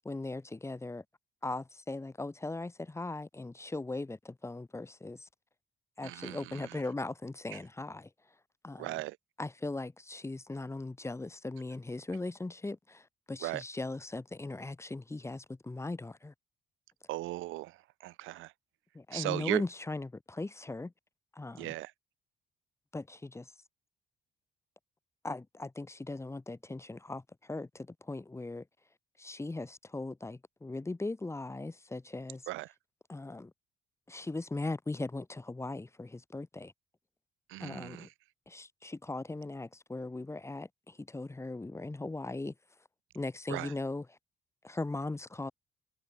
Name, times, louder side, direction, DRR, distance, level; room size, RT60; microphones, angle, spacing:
voice 1, 0.0-1.0 1.4-5.3 6.0-8.1 8.6-8.9 9.4-16.3 18.9-20.9 21.3-21.7 22.9-23.5 25.2-28.6 29.2-32.4 33.1-33.5 34.1-36.7 37.6-38.1 38.5-42.5 43.1-44.1 44.6-45.5, left 2 dB, 15° left, 0.8 m, -39 dB
voice 2, 6.0-6.8 7.5-7.6 8.8-9.2 13.4-13.6 17.1-18.5 19.1-19.6 21.6-21.9 32.5-32.7 37.5-38.1 43.5-43.7, right 18 dB, 90° right, 0.6 m, -37 dB
cardioid pair, 90°, 20 cm